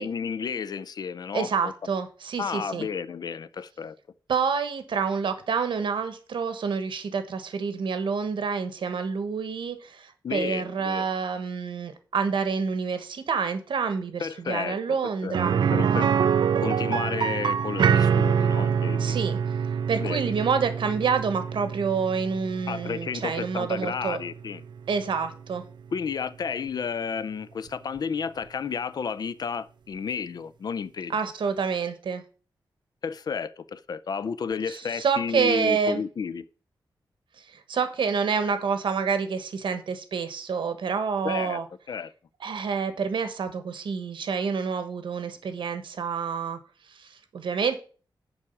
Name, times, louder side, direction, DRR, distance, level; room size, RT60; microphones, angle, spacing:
voice 1, 0.0-1.7 2.4-4.0 10.2-11.1 14.2-15.0 15.2-15.4 15.7-19.2 20.0-20.3 22.7-24.6 25.9-31.1 33.0-36.5 41.2-41.6 41.9-42.1, left 6 dB, 55° left, 0.4 m, -32 dB
voice 2, 1.3-2.9 4.3-15.5 19.0-19.4 19.9-24.2 24.9-25.6 31.1-32.2 34.7-36.0 37.4-41.6 42.4-46.6 46.9-47.8, right 6 dB, 80° right, 1.2 m, -28 dB
sound 1, 15.3-25.1 25.4-25.5 28.0-28.1, right 7 dB, 65° right, 0.4 m, -25 dB
7.1 x 4.8 x 7.1 m
wide cardioid pair, 180°, 8 cm